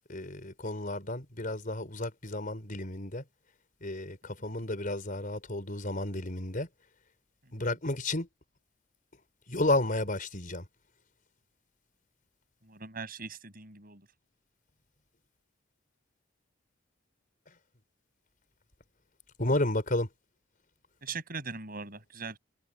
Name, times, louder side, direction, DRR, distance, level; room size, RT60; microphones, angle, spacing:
voice 1, 0.1-3.2 3.8-6.7 7.5-8.3 9.5-10.6 19.4-20.1, left 2 dB, 45° left, 4.9 m, -32 dB
voice 2, 12.6-14.0 21.0-22.4, right 4 dB, 50° right, 7.1 m, -40 dB
open air
head